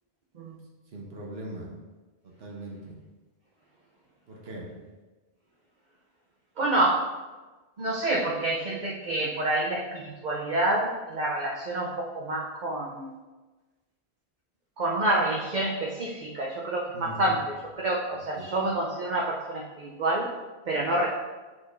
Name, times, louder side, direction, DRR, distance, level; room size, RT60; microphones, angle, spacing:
voice 1, 0.9-1.7 2.2-3.0 4.3-4.7 16.9-17.3 18.3-18.5, equal, 75° right, -2 dB, 1.2 m, -40 dB
voice 2, 6.6-7.1 7.8-13.1 14.8-20.3 20.7-21.1, right 1 dB, 50° right, -3 dB, 0.8 m, -28 dB
6.2 x 6.0 x 2.6 m, 1.2 s
omnidirectional pair, 1.1 m